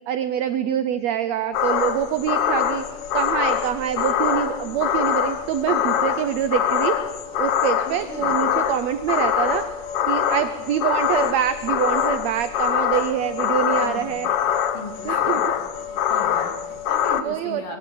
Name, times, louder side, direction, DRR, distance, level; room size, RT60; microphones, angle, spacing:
voice 1, 0.1-2.8 3.1-6.9 7.4-9.7 10.1-14.3 15.0-15.4 17.2-17.8, right 10 dB, 85° right, 12 dB, 1.5 m, -25 dB
sound 1, 1.5-17.2, left 9 dB, 75° left, 1.3 m, -24 dB
voice 2, 8.0-8.3 13.8-14.2 14.7-15.5 15.8-17.8, left 2 dB, 45° left, 3 dB, 3.5 m, -38 dB
22.0 x 16.0 x 8.6 m, 1.5 s
omnidirectional pair, 3.9 m